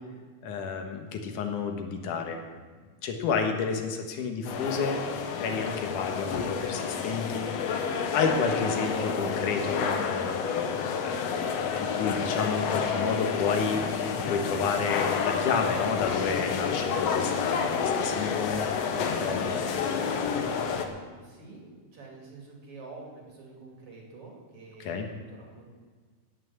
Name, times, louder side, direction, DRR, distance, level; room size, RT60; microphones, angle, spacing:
voice 1, 0.4-2.4 3.0-5.0 5.3-18.9 19.2-19.7 24.8-25.1, left 5 dB, 90° left, 4 dB, 2.9 m, -31 dB
Portugese Fish Market, 4.4-20.9, left 6 dB, 65° left, 1.9 m, -29 dB
voice 2, 18.9-25.7, right 3 dB, 50° right, -1 dB, 3.4 m, -46 dB
16.5 x 6.0 x 8.3 m, 1.5 s
omnidirectional pair, 3.4 m